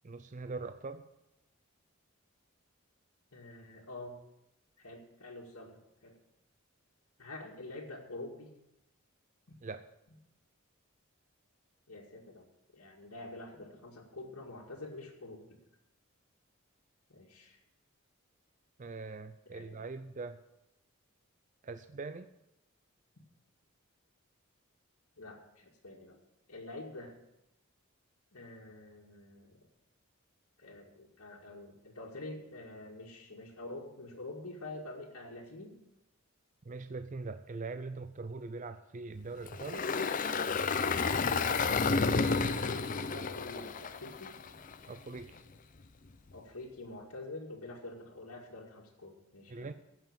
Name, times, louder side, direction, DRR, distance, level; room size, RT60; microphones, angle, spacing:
voice 1, 0.0-1.0 9.6-9.8 18.8-20.4 21.6-22.3 36.6-39.9 44.9-45.4 49.5-49.7, right 3 dB, 35° right, 10 dB, 0.5 m, -42 dB
voice 2, 3.3-4.1 4.8-6.1 7.2-8.5 11.9-12.5 12.7-15.6 17.1-17.6 19.5-19.8 25.2-26.2 26.5-27.1 28.3-29.6 30.6-35.7 41.6-44.4 46.3-49.7, left 2 dB, 80° left, -3 dB, 2.0 m, -47 dB
Engine, 39.5-44.7, left 4 dB, 35° left, 0.6 m, -31 dB
14.5 x 5.9 x 8.8 m, 0.86 s
head